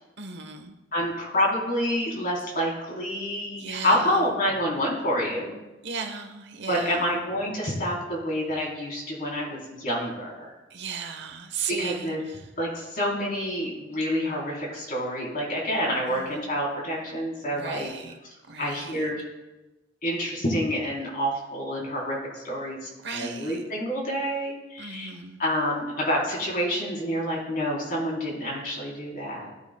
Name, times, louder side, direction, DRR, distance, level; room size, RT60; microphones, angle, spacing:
voice 1, 0.2-0.7 3.6-4.2 5.8-7.1 10.7-12.4 16.1-16.4 17.6-18.1 18.5-19.0 23.0-23.6 24.8-25.4, right 5 dB, 65° right, 5 dB, 1.0 m, -36 dB
voice 2, 0.9-5.5 6.7-10.5 11.7-12.2 12.6-17.9 18.6-19.2 20.0-25.1 25.4-29.5, equal, 45° left, -3 dB, 3.7 m, -28 dB
16.5 x 8.3 x 2.3 m, 1.0 s
head